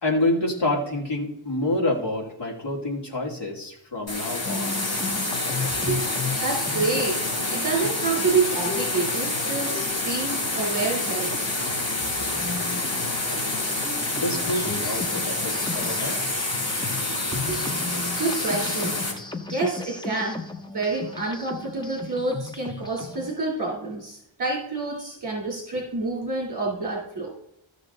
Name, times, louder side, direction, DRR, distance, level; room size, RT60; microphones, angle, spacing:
voice 1, 0.0-4.8 14.1-16.2, left 1 dB, 60° left, -1 dB, 2.6 m, -27 dB
sound 1, 4.1-19.1, left 2 dB, 30° left, 3.6 m, -27 dB
sound 2, 4.5-23.3, left 4 dB, 10° left, 0.7 m, -36 dB
voice 2, 6.4-11.6 17.3-17.6 18.2-19.0 19.5-20.4 20.7-27.4, right 3 dB, 40° right, -2 dB, 3.3 m, -28 dB
15.0 x 6.5 x 3.9 m, 0.79 s
wide cardioid pair, 170°, 48 cm